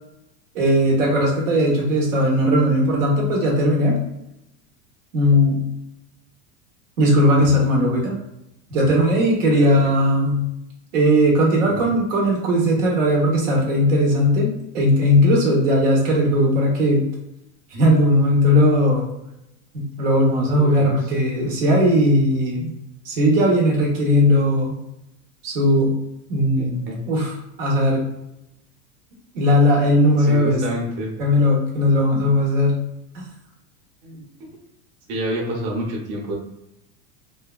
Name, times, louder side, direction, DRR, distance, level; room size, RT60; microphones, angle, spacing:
voice 1, 0.5-4.0 5.1-5.6 7.0-8.1 8.7-10.4 10.9-17.1 17.7-19.0 19.7-22.6 23.0-24.8 25.4-25.9 26.3-28.0 29.3-30.6 31.2-32.8, equal, 85° right, -2 dB, 1.1 m, -18 dB
voice 2, 9.5-9.9 20.5-20.9 26.5-27.0 30.2-31.1 34.0-34.2 35.1-36.3, right 1 dB, 50° right, -2 dB, 0.9 m, -28 dB
3.2 x 2.2 x 2.3 m, 0.86 s
supercardioid pair, 125°, 38 cm